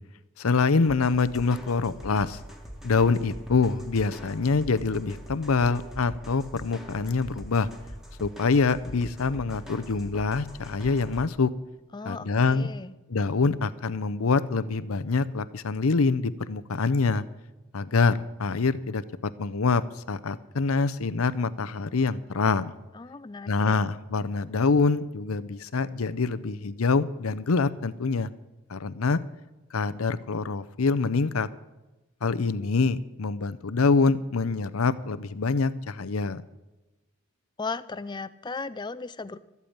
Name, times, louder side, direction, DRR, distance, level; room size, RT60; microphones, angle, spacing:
voice 1, 0.4-2.4 2.8-7.7 8.2-11.5 12.0-12.7 13.1-17.2 17.7-19.0 19.4-19.8 20.1-22.7 23.5-28.3 28.7-29.2 29.7-31.5 32.2-36.4, left 4 dB, 90° left, 14 dB, 0.7 m, -25 dB
sound 1, 0.8-11.2, equal, ahead, 1.6 m, -43 dB
voice 2, 11.9-12.9 22.9-23.8 37.6-39.4, left 4 dB, 20° left, 15 dB, 0.4 m, -36 dB
13.5 x 8.3 x 8.8 m, 1.1 s
head